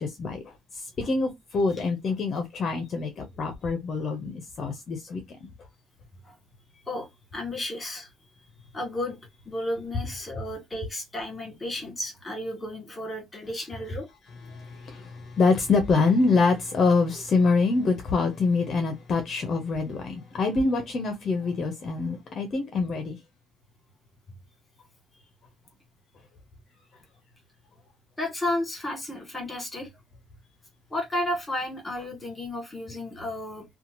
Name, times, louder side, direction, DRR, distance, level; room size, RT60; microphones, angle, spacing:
voice 1, 0.0-5.5 14.5-23.2, left 4 dB, 35° left, 0.6 m, -25 dB
voice 2, 6.9-8.1 8.7-9.2 9.4-14.1 28.2-29.9 30.9-33.6, left 1 dB, 10° left, 1.4 m, -33 dB
2.8 x 2.2 x 2.9 m
cardioid pair, 155°, 0 cm